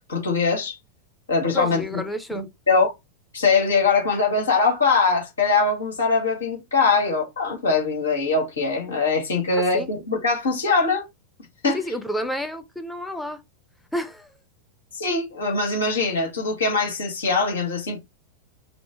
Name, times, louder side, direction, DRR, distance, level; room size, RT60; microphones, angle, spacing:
voice 1, 0.1-0.8 1.3-2.0 2.3-2.9 3.3-11.0 11.6-11.8 14.9-18.0, left 4 dB, 75° left, 1.7 m, -22 dB
voice 2, 1.5-2.5 9.7-9.9 11.7-13.4 13.9-14.4, equal, 5° left, 0.8 m, -30 dB
5.0 x 2.0 x 3.4 m
figure-of-eight pair, 90°, 0 cm